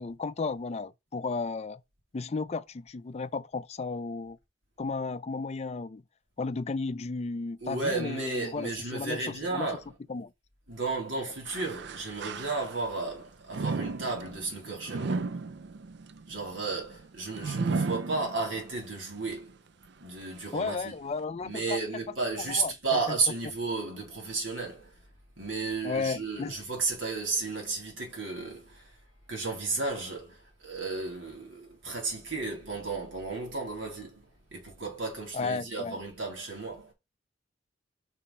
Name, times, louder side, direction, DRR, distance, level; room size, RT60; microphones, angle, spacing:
voice 1, 0.0-1.8 2.1-4.4 4.8-6.0 6.4-9.7 10.1-10.3 20.5-21.8 22.4-22.7 23.1-23.2 25.8-26.6 35.3-36.0, left 4 dB, 35° left, 0.4 m, -34 dB
voice 2, 7.6-9.9 10.7-15.3 16.3-19.6 20.0-21.0 21.4-25.0 25.4-29.0 29.3-36.9, right 3 dB, 75° right, 3.5 m, -33 dB
sound 1, 11.4-13.0 13.5-18.8 19.3-19.4 20.2-20.3, right 4 dB, 60° right, 0.5 m, -34 dB
5.6 x 5.5 x 4.2 m
head